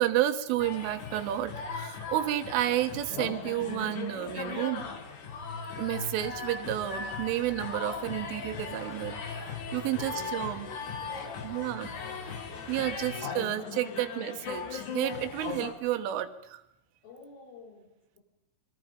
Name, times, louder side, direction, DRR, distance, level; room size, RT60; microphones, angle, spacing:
voice 1, 0.0-4.9 5.8-9.2 9.7-10.7 11.4-11.9 12.7-16.6, right 13 dB, 85° right, 10 dB, 3.8 m, -31 dB
sound 1, 0.6-15.7, left 5 dB, 50° left, 3.0 m, -38 dB
voice 2, 9.9-11.7 12.9-14.2 17.0-18.2, left 3 dB, 85° left, 1 dB, 7.1 m, -50 dB
27.0 x 22.5 x 5.2 m, 0.82 s
omnidirectional pair, 5.5 m